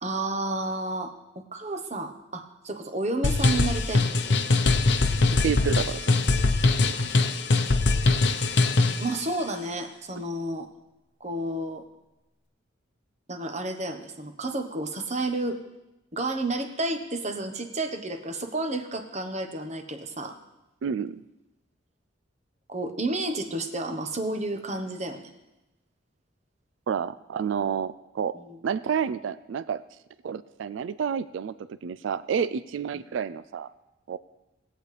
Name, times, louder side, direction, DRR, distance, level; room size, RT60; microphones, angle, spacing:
voice 1, 0.0-4.3 9.0-10.7 11.2-11.8 13.3-15.6 16.1-20.4 22.7-25.3 28.3-28.6, right 2 dB, 35° right, 6 dB, 1.0 m, -31 dB
sound 1, 3.2-9.1, left 3 dB, 60° left, 0.7 m, -22 dB
voice 2, 5.4-6.2 20.8-21.2 26.9-28.4 28.6-29.8 30.2-31.5 31.8-33.7 34.1-34.2, right 7 dB, 75° right, 15 dB, 0.3 m, -29 dB
20.0 x 8.4 x 3.3 m, 0.98 s
head